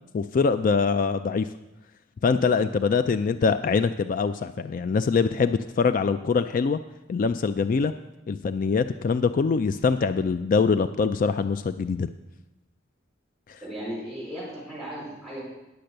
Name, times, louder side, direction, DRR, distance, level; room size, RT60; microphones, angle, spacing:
voice 1, 0.1-1.5 2.2-6.8 7.1-7.9 8.3-12.1, left 5 dB, 45° left, 11 dB, 0.3 m, -23 dB
voice 2, 13.6-15.5, equal, 5° left, -8 dB, 4.2 m, -36 dB
10.0 x 6.8 x 6.5 m, 0.98 s
head